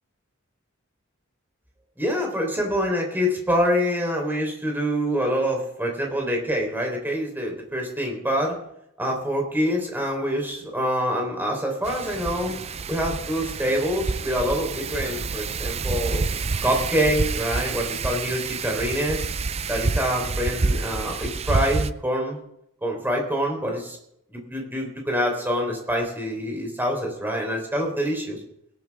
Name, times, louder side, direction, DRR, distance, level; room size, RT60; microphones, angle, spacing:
voice 1, 2.0-8.6 9.0-12.6 12.9-16.2 16.6-19.3 19.7-22.4 22.8-24.0 24.3-28.4, equal, 10° right, 0 dB, 4.0 m, -26 dB
Wind, 11.8-21.9, right 4 dB, 30° right, 0.5 m, -28 dB
20.5 x 11.5 x 3.7 m, 0.75 s
head